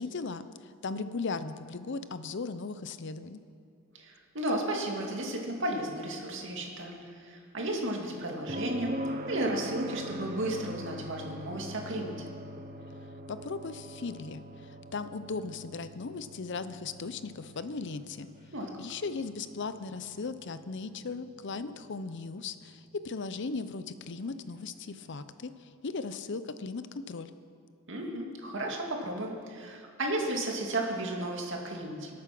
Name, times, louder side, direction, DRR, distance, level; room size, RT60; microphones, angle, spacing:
voice 1, 0.0-3.4 13.3-18.3 18.8-27.3, left 4 dB, 60° left, 12 dB, 0.6 m, -37 dB
voice 2, 3.9-9.0 9.3-12.2 18.5-18.8 27.9-32.2, right 1 dB, 65° right, 0 dB, 2.4 m, -34 dB
sound 1, 8.5-22.3 24.6-24.7, equal, 45° right, 1.0 m, -42 dB
24.0 x 8.6 x 6.1 m, 2.3 s
head